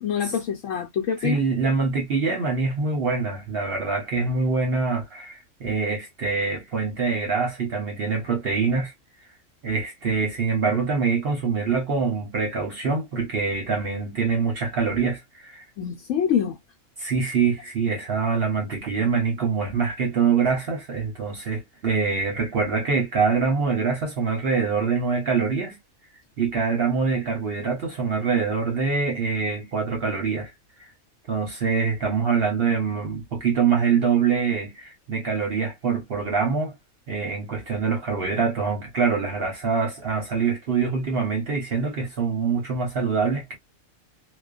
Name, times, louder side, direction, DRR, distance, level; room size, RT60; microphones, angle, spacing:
voice 1, 0.0-1.4 15.8-16.6, left 8 dB, 70° left, 0.9 m, -25 dB
voice 2, 1.2-8.9 9.6-15.6 17.0-25.8 26.4-30.5 31.3-36.7 37.1-43.5, right 5 dB, 55° right, 0.8 m, -24 dB
2.4 x 2.2 x 2.3 m
omnidirectional pair, 1.5 m